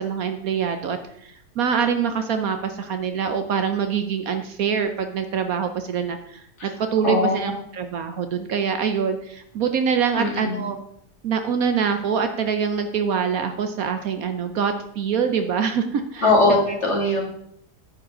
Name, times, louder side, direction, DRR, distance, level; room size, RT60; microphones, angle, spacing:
voice 1, 0.0-10.8 11.2-16.3, right 6 dB, 65° right, 8 dB, 1.1 m, -25 dB
voice 2, 7.0-7.4 10.2-10.6 16.2-17.2, left 2 dB, 45° left, -1 dB, 2.4 m, -20 dB
10.0 x 7.8 x 3.8 m, 0.71 s
omnidirectional pair, 1.7 m